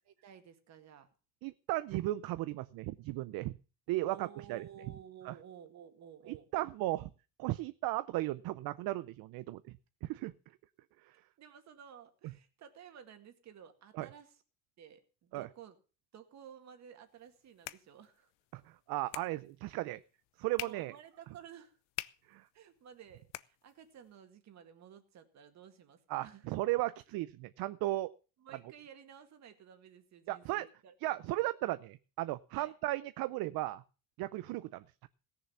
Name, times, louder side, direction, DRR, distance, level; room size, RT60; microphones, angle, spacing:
voice 1, 0.1-1.1 4.1-6.5 11.4-14.4 14.8-15.8 16.1-18.3 19.1-19.7 20.6-21.8 22.5-26.5 28.4-30.9 32.5-32.7, right 8 dB, 40° right, 8 dB, 2.0 m, -54 dB
voice 2, 1.4-3.5 3.9-4.7 5.3-5.4 6.3-7.1 7.4-9.6 10.0-10.3 14.0-14.1 15.3-15.5 18.5-18.6 18.9-20.0 20.4-20.9 22.3-22.4 26.1-28.1 30.3-30.7 31.0-33.8 34.2-35.1, right 17 dB, 60° right, 14 dB, 0.6 m, -35 dB
sound 1, 17.1-24.1, left 19 dB, 90° left, 0.8 m, -49 dB
17.5 x 7.0 x 7.0 m, 0.36 s
cardioid pair, 170°, 42 cm